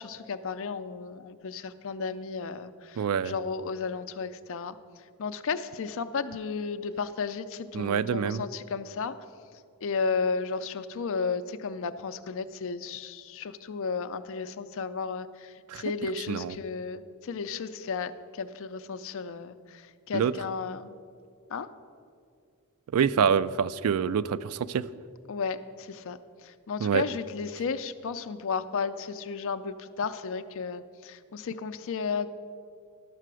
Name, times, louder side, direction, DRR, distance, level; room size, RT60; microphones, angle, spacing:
voice 1, 0.0-4.7 5.2-9.1 9.8-18.1 18.4-19.6 20.1-20.9 21.5-21.7 25.3-26.2 26.7-32.3, left 5 dB, 60° left, 11 dB, 0.5 m, -33 dB
voice 2, 3.0-3.3 7.7-8.4 15.7-15.8 16.3-16.6 20.1-20.3 22.9-24.8 26.8-27.0, right 7 dB, 70° right, 16 dB, 0.3 m, -26 dB
11.5 x 6.7 x 6.2 m, 2.3 s
head